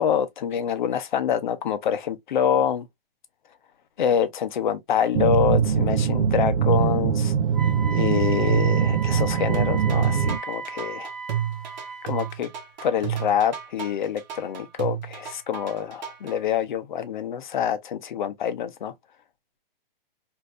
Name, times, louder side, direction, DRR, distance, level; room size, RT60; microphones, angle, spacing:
voice 1, 0.0-2.9 4.0-7.3 7.9-11.1 12.0-12.5 12.8-18.9, left 8 dB, 55° left, 0.7 m, -26 dB
sound 1, 5.1-10.4, right 7 dB, 85° right, 0.7 m, -22 dB
Wind instrument woodwind instrument, 7.5-12.3, right 4 dB, ahead, 1.1 m, -36 dB
sound 2, 9.5-16.3, right 10 dB, 50° right, 0.9 m, -32 dB
3.2 x 2.7 x 2.4 m
hypercardioid pair, 165°, 29 cm